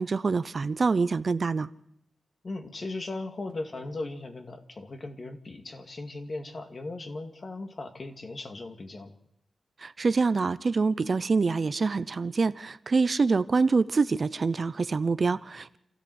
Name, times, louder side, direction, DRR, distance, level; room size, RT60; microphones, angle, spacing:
voice 1, 0.0-1.7 9.8-15.8, right 4 dB, 45° right, 0.7 m, -25 dB
voice 2, 2.4-9.1, left 2 dB, 45° left, 2.5 m, -38 dB
27.5 x 14.5 x 8.1 m
wide cardioid pair, 90°, 0 cm